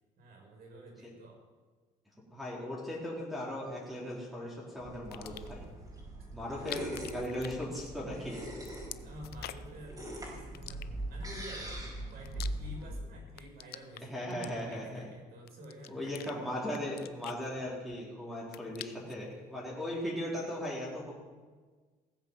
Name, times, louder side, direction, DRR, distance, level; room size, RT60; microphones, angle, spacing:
voice 1, 0.2-1.4 6.2-6.7 9.0-10.0 10.3-16.5, right 1 dB, 65° right, 0 dB, 6.1 m, -50 dB
voice 2, 2.3-5.7 6.3-8.4 14.1-15.1 15.9-21.1, left 1 dB, ahead, -7 dB, 4.1 m, -38 dB
sound 1, 4.8-12.9, right 1 dB, 20° right, 4.8 m, -42 dB
sound 2, 5.0-5.6 6.5-8.2 8.4-9.8 10.5-11.3 11.9-13.0 13.3-15.0 15.5-16.3 16.7-18.0 18.3-19.2, left 14 dB, 65° left, 0.6 m, -47 dB
18.0 x 8.0 x 7.5 m, 1.4 s
cardioid pair, 110°, 17 cm